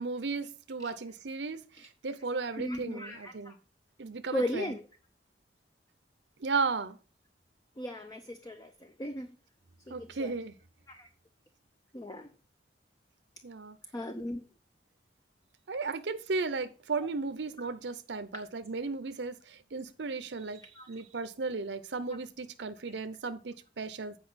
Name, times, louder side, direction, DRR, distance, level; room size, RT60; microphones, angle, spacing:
voice 1, 0.0-3.6 4.0-4.7 6.4-7.0 9.9-10.6 13.4-13.8 15.7-24.2, right 4 dB, 75° right, 0.7 m, -35 dB
voice 2, 2.5-3.6 4.3-4.8 7.8-9.3 9.9-10.3 10.9-11.1 11.9-12.3 13.9-14.5 20.7-20.9, equal, 20° left, 0.6 m, -37 dB
8.7 x 5.0 x 5.7 m
head